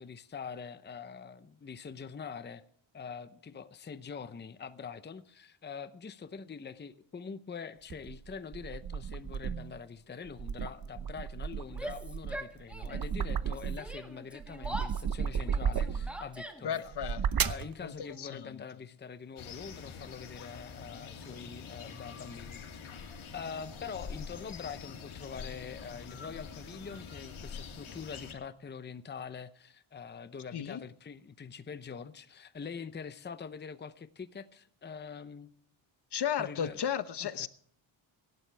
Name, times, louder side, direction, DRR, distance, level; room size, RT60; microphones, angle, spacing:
voice 1, 0.0-2.6 2.9-16.9 17.4-22.6 23.1-35.5 36.4-36.8 37.2-37.5, left 6 dB, 20° left, 0.8 m, -44 dB
sound 1, 7.9-9.8 10.3-14.0 14.4-16.3 16.9-17.7, right 7 dB, 45° right, 0.9 m, -34 dB
Yell, 11.7-13.1 13.4-16.9, equal, ahead, 1.9 m, -43 dB
voice 2, 16.6-17.5 17.8-18.6 30.5-30.8 36.1-37.5, left 9 dB, 50° left, 0.9 m, -35 dB
sound 2, 19.4-28.3, left 5 dB, 70° left, 2.9 m, -45 dB
25.5 x 12.0 x 3.4 m
cardioid pair, 120°, 50 cm